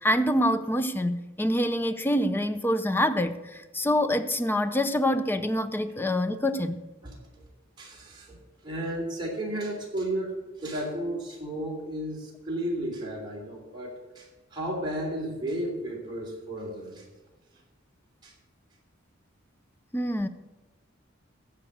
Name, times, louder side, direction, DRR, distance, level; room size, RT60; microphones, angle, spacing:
voice 1, 0.0-6.8 19.9-20.3, equal, 10° left, 0.5 m, -26 dB
voice 2, 7.8-8.4 8.6-17.1 18.2-18.3, right 1 dB, 25° right, 3.1 m, -33 dB
15.0 x 5.2 x 8.0 m
head